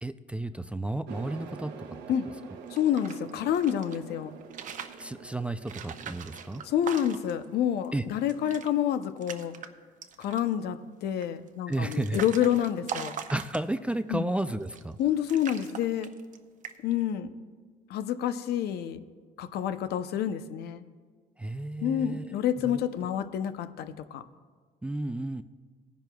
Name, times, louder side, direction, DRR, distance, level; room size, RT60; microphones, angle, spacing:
voice 1, 0.0-1.7 5.0-6.6 7.9-8.0 11.7-12.2 13.3-15.0 21.4-22.8 24.8-25.4, right 2 dB, 5° right, 11 dB, 0.3 m, -32 dB
sound 1, 1.1-8.6, right 6 dB, 90° right, 1.0 m, -47 dB
sound 2, 2.6-4.0 4.4-5.1 5.6-7.5 7.8-7.9 8.2-8.7 9.0-9.7 10.0-10.5 11.2-13.9 14.6-15.0 15.3-16.4 16.6-17.0, right 8 dB, 50° right, 0.7 m, -41 dB
voice 2, 2.7-4.4 6.6-9.5 10.2-13.1 14.1-14.3 15.0-16.1 16.8-17.3 17.9-19.0 19.4-20.8 21.8-24.2, left 10 dB, 75° left, 11 dB, 0.6 m, -28 dB
18.5 x 10.5 x 2.3 m, 1.5 s
cardioid pair, 110°, 17 cm